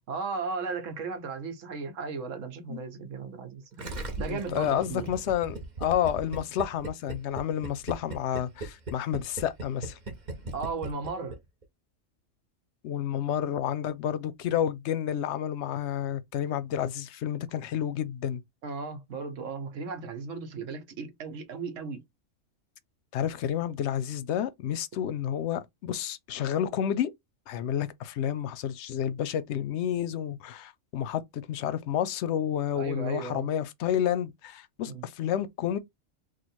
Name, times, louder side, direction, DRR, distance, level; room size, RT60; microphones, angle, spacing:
voice 1, 0.1-3.9 4.2-5.1 10.5-11.4 18.6-22.0 32.8-33.5 34.8-35.1, right 4 dB, 80° right, 1.2 m, -36 dB
Gurgling, 3.8-11.4 11.6-11.7, right 2 dB, 40° right, 0.9 m, -38 dB
voice 2, 4.3-10.0 12.8-18.4 23.1-27.1 27.5-35.8, left 10 dB, 70° left, 0.8 m, -30 dB
2.9 x 2.5 x 4.3 m
omnidirectional pair, 1.3 m